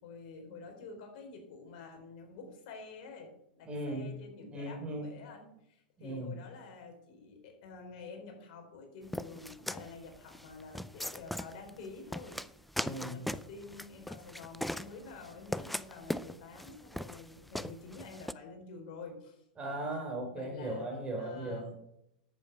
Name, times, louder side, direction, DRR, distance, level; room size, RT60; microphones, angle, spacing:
voice 1, 0.0-12.4 12.9-19.4 20.3-20.9 21.2-21.7, left 4 dB, 60° left, 4 dB, 4.2 m, -49 dB
voice 2, 3.7-4.1 4.5-5.1 6.0-6.3 12.8-13.3 19.6-21.7, right 1 dB, 20° right, 2 dB, 4.2 m, -37 dB
sound 1, 9.1-18.3, left 1 dB, ahead, 0.4 m, -39 dB
10.5 x 8.6 x 6.0 m, 0.76 s
hypercardioid pair, 110°, 5 cm